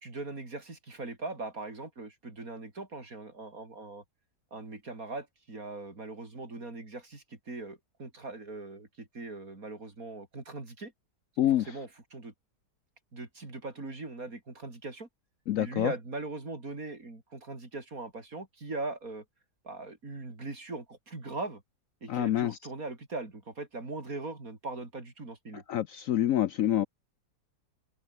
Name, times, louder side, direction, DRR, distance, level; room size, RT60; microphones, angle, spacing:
voice 1, 0.0-4.0 4.5-10.9 11.4-12.3 13.1-15.1 15.6-19.2 19.6-21.6 22.0-25.6, right 3 dB, 55° right, 4.8 m, -40 dB
voice 2, 15.5-15.9 22.1-22.6 25.7-26.9, left 12 dB, 65° left, 0.9 m, -26 dB
open air
omnidirectional pair, 1.8 m